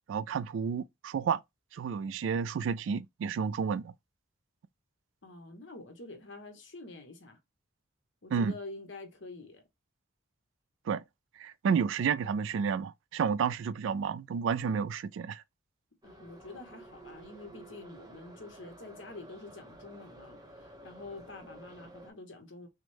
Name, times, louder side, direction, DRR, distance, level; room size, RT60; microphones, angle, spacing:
voice 1, 0.1-1.4 1.7-3.9 8.3-8.5 10.9-11.0 11.4-15.4, right 6 dB, 65° right, 0.3 m, -31 dB
voice 2, 5.2-7.4 8.2-9.6 16.0-22.7, left 2 dB, 65° left, 1.2 m, -47 dB
Subway metro underground, 16.0-22.1, right 1 dB, 20° right, 0.9 m, -52 dB
6.0 x 2.2 x 3.4 m
head